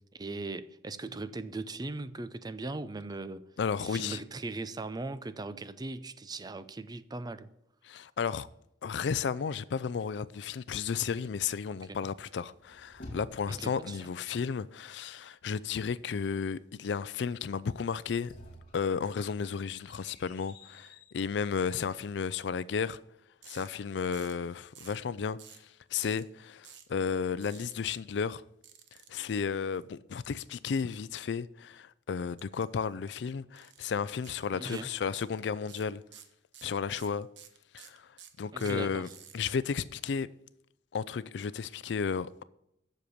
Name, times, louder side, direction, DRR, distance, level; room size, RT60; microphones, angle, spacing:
voice 1, 0.1-3.4 3.8-7.5 11.9-12.0 13.5-14.1 34.5-34.9 38.5-39.1, right 3 dB, 25° right, 0.5 m, -39 dB
voice 2, 3.6-4.2 7.8-8.5 8.8-18.3 18.7-23.0 23.5-25.4 25.9-28.4 29.1-36.0 36.6-37.3 37.7-38.1 38.4-39.1 39.3-40.3 40.9-42.4, left 6 dB, 70° left, 0.4 m, -33 dB
sound 1, 12.4-13.9 17.9-21.2, left 1 dB, 55° left, 2.4 m, -51 dB
sound 2, 23.4-23.7 24.1-24.4 24.7-25.0 25.4-25.7 26.0-26.2 26.6-26.9 27.4-27.7 28.6-29.2 32.4-32.6 32.9-33.1 33.5-33.8 34.2-34.4 34.7-35.3 35.6-39.4, right 9 dB, 90° right, 1.0 m, -52 dB
7.8 x 6.6 x 6.9 m
head